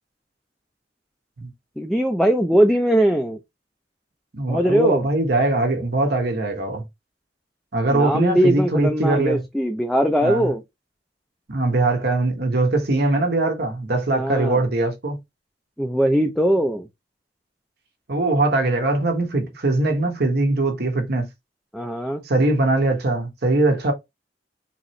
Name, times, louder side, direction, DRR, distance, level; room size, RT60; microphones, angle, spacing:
voice 1, 1.8-3.4 4.5-5.0 7.9-10.6 14.1-14.6 15.8-16.9 21.7-22.2, right 1 dB, ahead, 0.4 m, -20 dB
voice 2, 4.3-6.8 7.7-9.4 10.2-10.5 11.5-15.2 18.1-21.3 22.2-23.9, right 2 dB, 65° right, 1.2 m, -21 dB
4.0 x 2.9 x 3.1 m
head